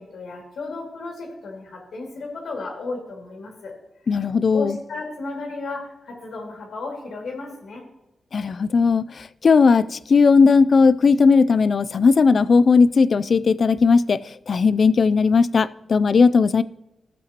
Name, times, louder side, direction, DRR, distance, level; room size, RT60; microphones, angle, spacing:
voice 1, 0.0-3.7 4.5-7.8, left 3 dB, 85° left, 2.5 m, -34 dB
voice 2, 4.1-4.8 8.3-16.6, left 5 dB, 55° left, 0.4 m, -17 dB
14.0 x 7.5 x 2.9 m
wide cardioid pair, 95°, 0 cm